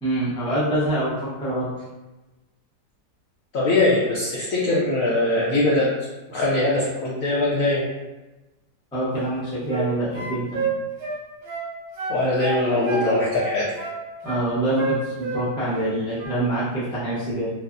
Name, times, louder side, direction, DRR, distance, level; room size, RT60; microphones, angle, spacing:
voice 1, 0.0-1.7 8.9-10.6 14.2-17.5, right 1 dB, 5° left, -9 dB, 0.3 m, -25 dB
voice 2, 3.5-5.9 6.3-7.8 12.1-13.6, left 2 dB, 70° left, -6 dB, 0.8 m, -21 dB
sound 1, 9.2-9.9 10.1-11.7 12.0-13.1 13.4-14.4 14.8-15.9 16.1-16.4, right 4 dB, 65° right, 1.1 m, -29 dB
3.2 x 2.0 x 2.4 m, 1.1 s
omnidirectional pair, 1.8 m